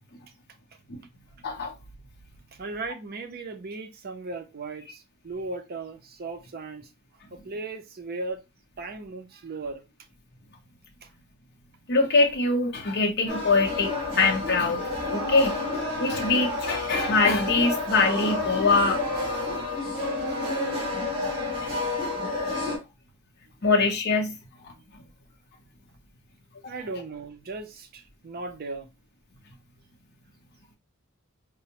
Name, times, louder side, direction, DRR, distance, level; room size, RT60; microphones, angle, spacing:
voice 1, 1.4-1.7 11.9-15.5 15.9-19.0 23.6-24.4 24.6-24.7 26.6-26.7, left 3 dB, 50° left, 0.6 m, -23 dB
voice 2, 2.5-6.9 7.3-8.4 8.8-9.8 11.0-11.1 26.7-28.9, right 3 dB, 50° right, 0.5 m, -37 dB
sound 1, 13.3-22.8, left 2 dB, 25° right, 1.3 m, -29 dB
4.3 x 2.0 x 2.8 m
head